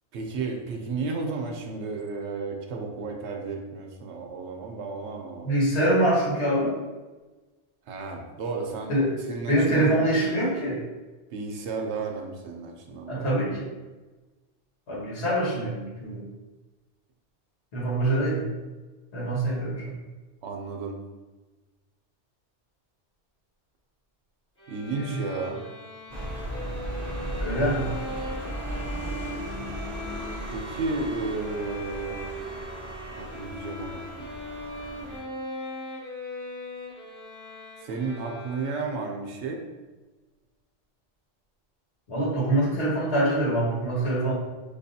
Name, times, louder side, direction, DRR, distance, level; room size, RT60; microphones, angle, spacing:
voice 1, 0.1-5.6 7.9-9.0 9.3-10.0 11.3-13.4 20.4-21.0 24.7-25.6 30.5-32.2 33.2-34.3 37.8-39.6, right 3 dB, 85° right, 2 dB, 0.9 m, -33 dB
voice 2, 5.4-6.8 8.9-9.1 9.5-10.8 13.1-13.7 14.9-16.3 17.7-18.4 19.1-19.9 24.9-25.2 27.4-27.9 42.1-44.3, right 1 dB, 75° left, -6 dB, 1.5 m, -24 dB
Bowed string instrument, 24.6-39.2, equal, 10° right, 1.3 m, -40 dB
sound 1, 26.1-35.2, equal, 45° right, 0.6 m, -36 dB
5.1 x 2.4 x 2.7 m, 1.2 s
omnidirectional pair, 1.2 m